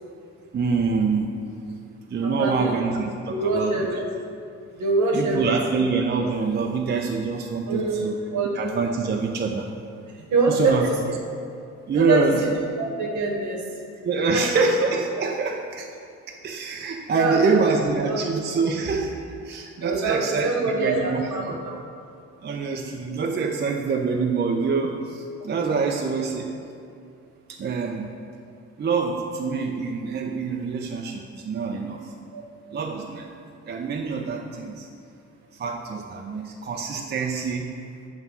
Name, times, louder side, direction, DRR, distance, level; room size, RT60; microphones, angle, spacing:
voice 1, 0.5-1.3 1.7-1.8 2.1-3.7 5.1-8.2 8.6-9.7 10.5-10.9 11.9-12.5 14.0-15.9 16.4-19.1 19.4-21.6 22.4-26.5 27.5-28.1 28.8-32.0 32.7-34.9 35.6-37.7, right 4 dB, 30° right, 2 dB, 0.5 m, -25 dB
voice 2, 2.2-2.8 3.3-4.0 4.7-5.5 7.7-8.1 8.3-8.5 10.1-11.0 11.9-12.5 12.8-13.6 14.3-14.6 17.1-18.2 19.8-21.8 32.3-32.4, right 3 dB, 60° right, 0 dB, 1.2 m, -25 dB
7.3 x 2.6 x 5.5 m, 2.4 s
hypercardioid pair, 50°, 33 cm